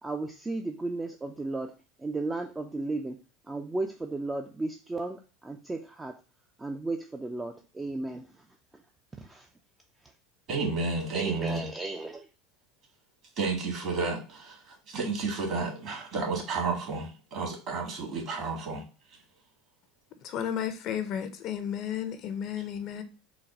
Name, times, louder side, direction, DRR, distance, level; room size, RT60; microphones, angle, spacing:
voice 1, 0.0-6.2 6.6-8.3 9.2-9.5 10.0-10.1 11.1-12.3, right 2 dB, 15° right, 0.4 m, -35 dB
voice 2, 10.5-11.7 13.4-18.8, right 4 dB, 50° right, 1.9 m, -31 dB
voice 3, 20.2-23.0, left 9 dB, 50° left, 0.6 m, -33 dB
4.0 x 2.2 x 4.2 m
hypercardioid pair, 95°, 0 cm